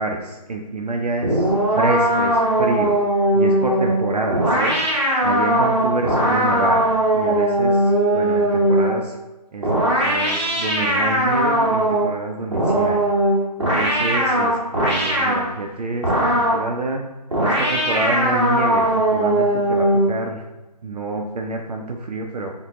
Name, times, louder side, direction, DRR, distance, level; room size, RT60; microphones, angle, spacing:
voice 1, 0.0-3.0 3.3-4.8 5.2-9.2 9.5-9.7 10.0-13.0 13.6-17.0 17.4-20.4 20.8-22.5, right 2 dB, 70° right, 2 dB, 0.5 m, -27 dB
sound 1, 1.2-9.1 9.6-12.1 12.5-15.5 16.0-16.7 17.3-20.2, right 1 dB, 45° right, 1.1 m, -19 dB
4.0 x 2.2 x 2.9 m, 1.0 s
figure-of-eight pair, 160°, 21 cm